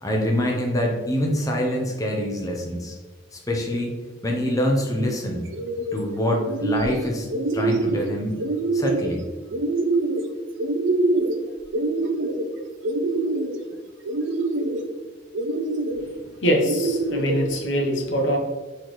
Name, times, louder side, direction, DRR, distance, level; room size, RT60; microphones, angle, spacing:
voice 1, 0.0-3.0 3.3-3.9 4.2-5.4 5.9-7.3 7.5-8.4 8.7-9.2, equal, 20° left, 0 dB, 0.7 m, -25 dB
sound 1, 5.5-6.0 6.4-7.0 7.3-8.0 8.4-9.1 9.5-10.2 10.6-11.4 11.7-12.4 12.8-13.6 14.1-14.8 15.3-16.0 16.6-17.4, right 2 dB, 75° right, 0.5 m, -24 dB
voice 2, 16.4-18.4, equal, 75° left, 2 dB, 0.9 m, -23 dB
4.5 x 3.9 x 3.1 m, 1.3 s
head